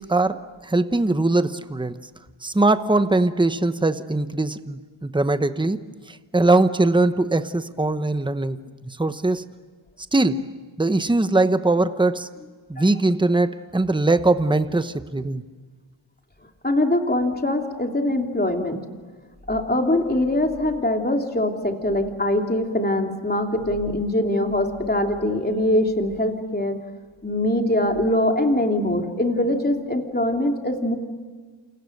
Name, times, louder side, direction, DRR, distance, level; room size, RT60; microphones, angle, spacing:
voice 1, 0.0-2.0 2.4-5.8 6.1-9.4 10.1-10.4 10.8-12.3 12.7-15.4, right 2 dB, 10° right, 11 dB, 0.9 m, -21 dB
voice 2, 16.6-18.8 19.5-26.8 27.2-31.0, left 1 dB, 20° left, 3 dB, 3.0 m, -22 dB
29.5 x 29.0 x 6.6 m, 1.5 s
wide cardioid pair, 110°, 50 cm